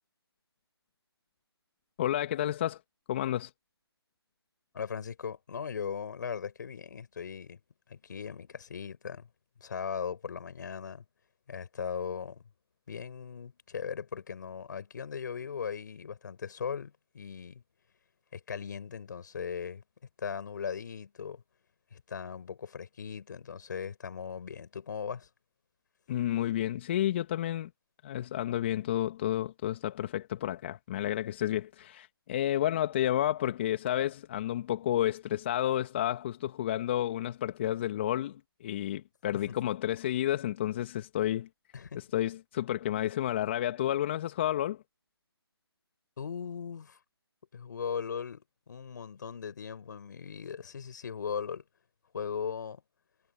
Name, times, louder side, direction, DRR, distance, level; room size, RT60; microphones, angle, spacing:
voice 1, 2.0-2.8 3.1-3.5 26.1-27.7 28.0-41.5 41.9-44.8, left 12 dB, 25° left, 1.5 m, -31 dB
voice 2, 4.7-7.6 7.9-9.3 9.6-11.0 11.5-12.4 12.9-17.6 18.3-19.8 20.2-21.4 21.9-25.3 39.3-39.4 41.7-42.0 46.2-47.0 47.5-51.6 52.1-52.8, left 6 dB, 45° left, 5.4 m, -38 dB
figure-of-eight pair, 155°, 14 cm